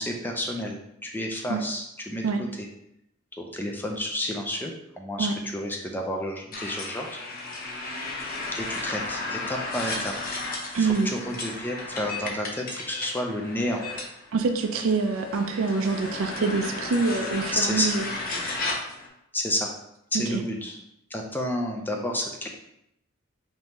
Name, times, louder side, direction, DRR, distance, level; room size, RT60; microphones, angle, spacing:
voice 1, 0.0-2.2 2.6-2.7 3.4-5.3 5.5-7.2 8.5-10.1 10.8-13.8 17.5-18.0 19.3-19.7 20.1-20.8 21.1-22.5, left 1 dB, 10° left, 1 dB, 0.4 m, -30 dB
sound 1, 6.5-19.1, left 2 dB, 45° left, 0.8 m, -34 dB
voice 2, 10.7-11.1 14.3-18.1 20.3-20.4, right 4 dB, 85° right, 5 dB, 0.4 m, -25 dB
5.2 x 2.7 x 3.0 m, 0.81 s
head